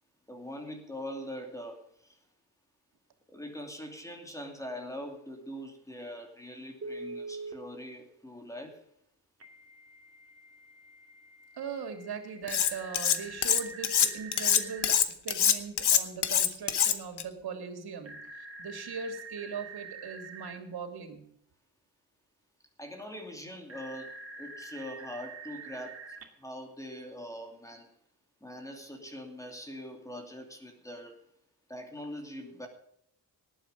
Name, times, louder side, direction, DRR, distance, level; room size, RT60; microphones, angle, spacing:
voice 1, 0.3-2.2 3.3-8.8 22.8-27.9 28.4-31.2 31.7-32.7, equal, 10° left, 4 dB, 2.7 m, -42 dB
Telephone, 6.8-7.6 9.4-14.9 18.0-20.6 23.7-26.2, right 3 dB, 35° right, 2.6 m, -45 dB
voice 2, 11.6-21.2, right 6 dB, 75° right, 6 dB, 3.2 m, -40 dB
Cutlery silverware, 12.5-13.2 13.4-17.2, left 9 dB, 90° left, 1.4 m, -24 dB
19.0 x 9.0 x 5.3 m, 0.70 s
wide cardioid pair, 175°, 38 cm